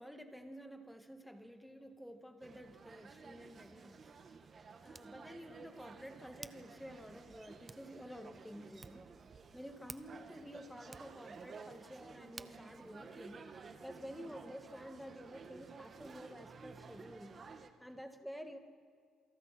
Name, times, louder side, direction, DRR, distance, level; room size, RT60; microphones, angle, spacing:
voice 1, 0.0-4.1 4.6-9.0 9.5-17.4 17.8-18.6, equal, ahead, 5 dB, 2.1 m, -51 dB
sound 1, 2.4-17.7, right 5 dB, 45° right, 1.5 m, -54 dB
Hands, 3.3-14.1, right 3 dB, 25° right, 0.8 m, -59 dB
27.5 x 24.0 x 4.4 m, 2.1 s
cardioid pair, 90°, 0 cm